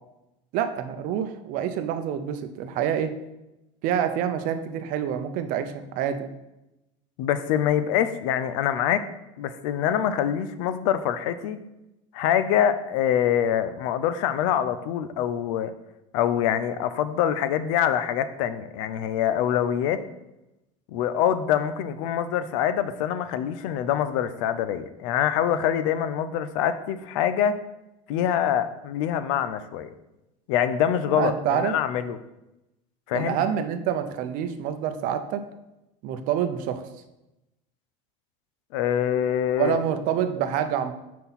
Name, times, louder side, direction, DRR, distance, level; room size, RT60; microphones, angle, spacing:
voice 1, 0.5-3.1 3.8-6.3 31.1-31.7 33.1-35.4 36.0-36.8 39.6-40.9, right 9 dB, 55° right, 9 dB, 0.6 m, -27 dB
voice 2, 7.2-9.1 9.4-11.6 12.1-15.7 16.1-20.0 20.9-27.6 28.1-29.9 30.5-32.2 33.1-33.4 38.7-39.8, left 9 dB, 80° left, 13 dB, 0.5 m, -25 dB
5.8 x 4.2 x 4.1 m, 0.94 s
supercardioid pair, 135°, 17 cm